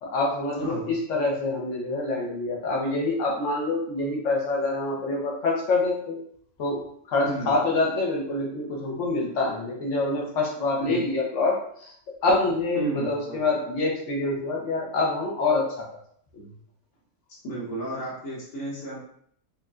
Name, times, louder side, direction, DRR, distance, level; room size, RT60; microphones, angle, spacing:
voice 1, 0.0-6.2 6.6-6.8 7.1-11.9 12.2-15.9 16.3-16.4, left 2 dB, 55° left, -2 dB, 1.2 m, -26 dB
voice 2, 0.6-0.9 7.2-7.5 10.8-11.0 12.7-13.4 17.4-19.0, right 2 dB, 85° left, -7 dB, 1.7 m, -32 dB
5.1 x 2.7 x 2.4 m, 0.65 s
omnidirectional pair, 1.6 m